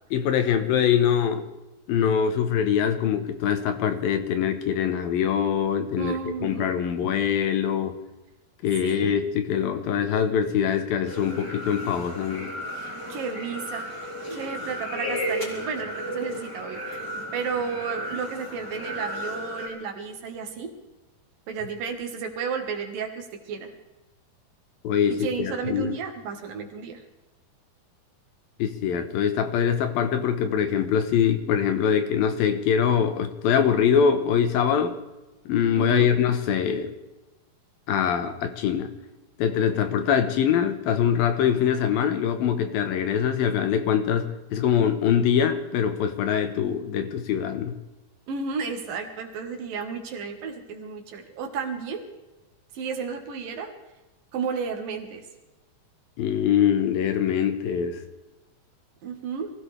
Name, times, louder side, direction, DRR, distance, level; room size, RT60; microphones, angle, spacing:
voice 1, 0.1-1.4 1.9-7.9 8.6-12.5 24.8-26.0 28.6-35.0 35.5-37.0 37.9-38.9 39.4-47.8 56.2-58.0, left 8 dB, 75° left, 8 dB, 2.8 m, -23 dB
voice 2, 6.0-6.7 8.8-9.1 12.9-14.0 14.3-17.0 17.3-20.7 21.5-23.7 25.2-27.0 35.7-36.1 48.3-52.0 52.7-53.7 54.3-55.3 59.0-59.5, right 5 dB, 70° right, 4 dB, 3.2 m, -32 dB
sound 1, 11.0-19.7, equal, 5° left, 3.2 m, -34 dB
24.0 x 15.5 x 3.4 m, 1.0 s
omnidirectional pair, 4.3 m